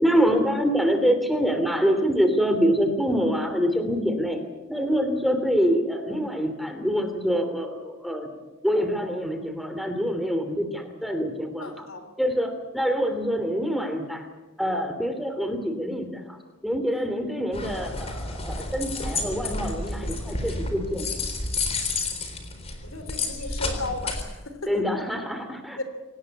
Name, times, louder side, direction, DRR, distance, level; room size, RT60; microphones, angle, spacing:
voice 1, 0.0-4.4 4.7-8.3 8.6-11.9 12.2-14.3 14.6-21.1 24.7-25.8, equal, ahead, 7 dB, 2.8 m, -25 dB
voice 2, 11.6-12.1 16.9-17.1 22.8-24.8 25.8-25.9, left 2 dB, 70° left, 9 dB, 3.3 m, -35 dB
sound 1, 17.5-24.2, left 3 dB, 30° left, 4.0 m, -30 dB
26.0 x 19.0 x 8.4 m, 1.2 s
head